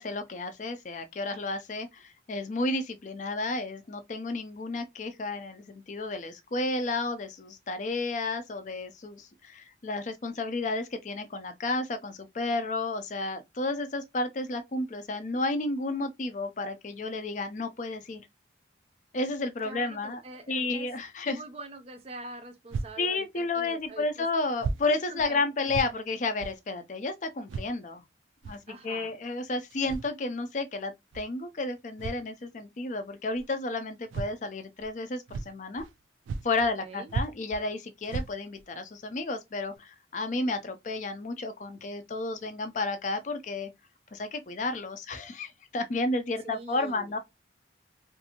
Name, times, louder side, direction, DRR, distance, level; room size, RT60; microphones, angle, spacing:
voice 1, 0.0-18.2 19.1-20.2 20.5-21.4 23.0-28.0 28.4-35.8 36.4-43.7 44.1-47.2, left 2 dB, 40° left, 0.4 m, -32 dB
voice 2, 19.6-20.9 21.2-24.3 25.1-25.4 28.7-29.2 36.6-37.1 46.4-47.1, right 2 dB, 30° right, 0.5 m, -44 dB
sound 1, 22.7-22.9 23.8-23.9 24.6-24.8 25.2-25.3 25.7-25.9 26.4-26.6 27.5-27.7 28.4-28.6 29.7-30.1 31.1-31.2 32.0-32.3 33.3-33.5 34.1-34.3 34.8-34.9 35.3-35.9 36.2-36.8 37.1-37.6 38.0-38.6 39.2-39.3 39.7-39.8, right 4 dB, 90° right, 0.3 m, -35 dB
2.6 x 2.5 x 2.8 m
head